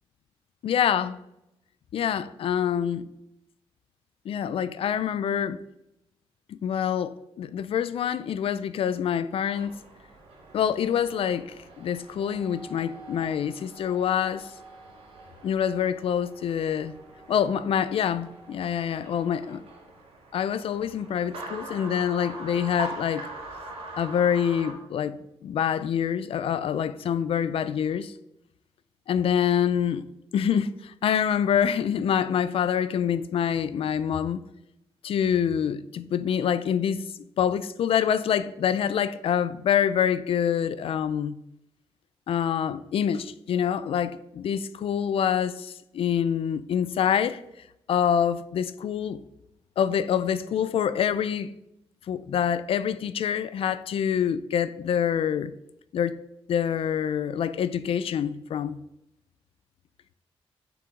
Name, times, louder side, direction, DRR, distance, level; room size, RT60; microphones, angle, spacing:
voice 1, 0.6-1.2 1.9-3.0 4.3-5.6 6.5-9.8 10.5-14.5 15.4-16.9 17.3-19.6 20.3-23.3 24.0-28.1 29.1-30.1 30.3-34.4 35.0-37.0 37.4-41.4 42.3-47.4 47.9-49.2 49.8-51.5 52.1-55.5 55.9-56.2 56.5-58.8, left 8 dB, 65° left, 0.4 m, -26 dB
sound 1, 9.5-24.7, right 2 dB, 70° right, 2.6 m, -43 dB
6.9 x 6.0 x 5.0 m
cardioid pair, 110°, 10 cm